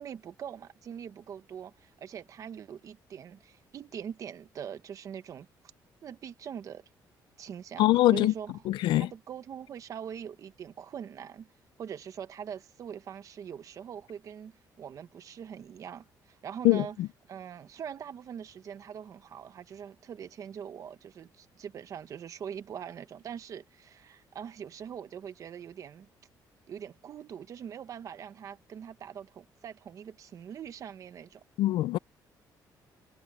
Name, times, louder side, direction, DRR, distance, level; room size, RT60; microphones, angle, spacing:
voice 1, 0.0-5.5 6.0-6.8 7.4-8.6 9.0-11.5 11.8-17.0 17.3-26.1 26.7-31.4, right 8 dB, 45° right, 1.1 m, -42 dB
voice 2, 7.8-8.3 8.7-9.1 16.6-17.1 31.6-32.0, left 16 dB, 85° left, 0.5 m, -23 dB
cardioid pair, 150°, 8 cm